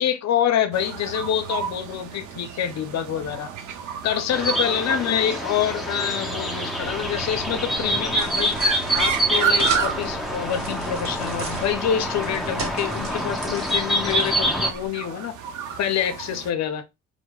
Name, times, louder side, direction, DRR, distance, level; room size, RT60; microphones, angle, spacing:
voice 1, 0.0-3.5 4.0-8.6 8.9-15.4 15.8-16.8, left 9 dB, 60° left, 0.6 m, -26 dB
sound 1, 0.7-16.5, right 7 dB, 85° right, 0.7 m, -33 dB
sound 2, 4.3-14.7, equal, ahead, 0.7 m, -26 dB
sound 3, 7.7-14.9, right 3 dB, 50° right, 1.2 m, -37 dB
4.4 x 2.1 x 2.3 m
cardioid pair, 90°, 30 cm